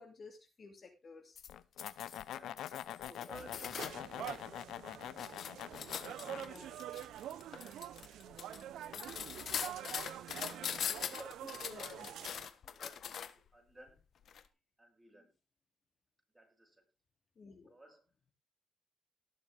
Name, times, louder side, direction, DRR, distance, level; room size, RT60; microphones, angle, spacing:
voice 1, 0.0-1.4 6.4-6.8 11.7-12.1 17.4-17.7, left 4 dB, 40° left, 4 dB, 2.7 m, -53 dB
sound 1, 1.4-4.4 4.8-13.5 14.3-14.4, left 8 dB, 60° left, 1.3 m, -42 dB
sound 2, 1.5-6.4, left 11 dB, 75° left, 0.8 m, -45 dB
voice 2, 2.3-6.7 7.2-9.1 10.0-12.2 12.6-13.1 13.3-14.0 14.8-15.3 16.3-16.9 17.7-18.0, right 1 dB, 10° right, 1 dB, 6.8 m, -59 dB
sound 3, 3.3-12.5, right 11 dB, 80° right, 0.8 m, -46 dB
19.0 x 6.9 x 3.5 m, 0.27 s
cardioid pair, 90°, 0 cm